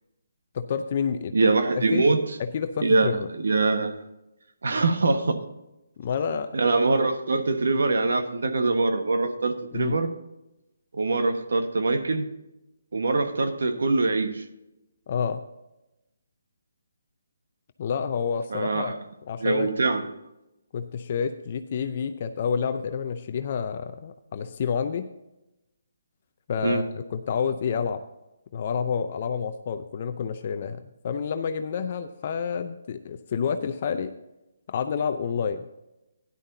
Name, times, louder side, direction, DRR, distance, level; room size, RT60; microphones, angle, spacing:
voice 1, 0.5-1.3 1.9-2.1 2.4-3.3 6.0-6.5 9.7-10.0 15.1-15.4 17.8-19.0 19.3-19.7 20.7-25.1 26.5-28.0 28.5-34.1 34.7-35.7, left 6 dB, 35° left, 8 dB, 0.5 m, -29 dB
voice 2, 1.3-2.2 2.8-4.0 4.6-5.4 6.5-10.1 10.9-12.3 12.9-14.4 18.5-19.0 19.4-20.0 26.6-26.8, right 3 dB, 75° right, 7 dB, 1.3 m, -23 dB
12.5 x 10.5 x 2.7 m, 0.94 s
hypercardioid pair, 165°, 0 cm